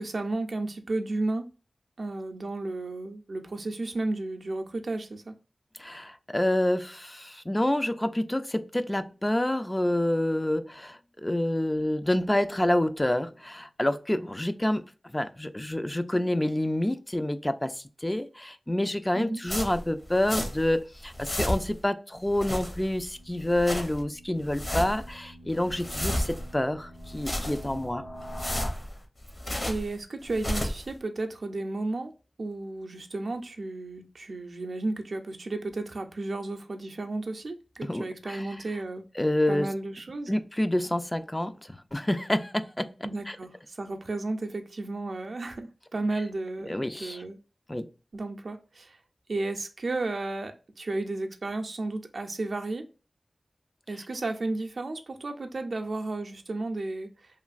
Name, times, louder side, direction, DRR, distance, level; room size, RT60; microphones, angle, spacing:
voice 1, 0.0-1.5 2.0-5.3 19.1-19.4 29.6-32.1 32.4-39.0 39.5-40.4 43.0-47.4 48.1-49.0 49.3-52.9 53.9-57.4, right 2 dB, 70° right, 0.4 m, -33 dB
voice 2, 5.8-14.8 15.1-28.0 37.9-38.4 39.2-39.7 40.3-43.4 46.6-47.2 47.7-47.9, left 1 dB, 20° left, 0.3 m, -28 dB
sound 1, 19.5-20.8 21.0-21.9 22.2-23.1 23.4-24.0 24.4-25.1 25.5-26.6 27.0-27.8 28.2-29.9 30.3-30.9, left 1 dB, 40° left, 0.8 m, -33 dB
sound 2, 23.1-28.7, equal, 75° left, 0.9 m, -44 dB
3.0 x 2.4 x 2.4 m
cardioid pair, 45°, 0 cm